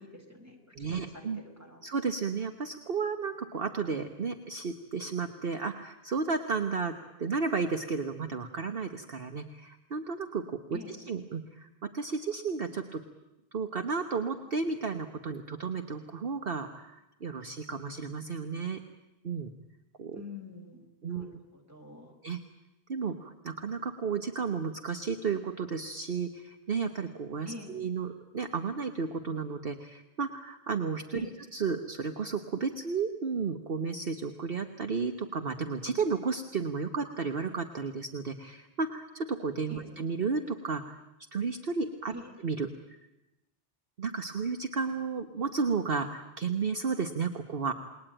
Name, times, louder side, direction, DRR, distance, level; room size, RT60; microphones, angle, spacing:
voice 1, 0.0-1.8 10.7-11.0 20.1-22.1 27.4-27.7 31.1-31.3 39.7-39.9 42.1-42.3, left 2 dB, 15° right, 2 dB, 4.6 m, -46 dB
voice 2, 0.8-1.4 1.8-13.0 13.5-18.8 19.2-19.5 20.0-20.2 21.0-21.4 22.2-22.4 22.9-41.0 41.3-42.1 42.4-43.0 44.0-47.7, right 5 dB, 50° right, 6 dB, 1.3 m, -33 dB
28.5 x 21.0 x 9.0 m, 0.94 s
omnidirectional pair, 1.3 m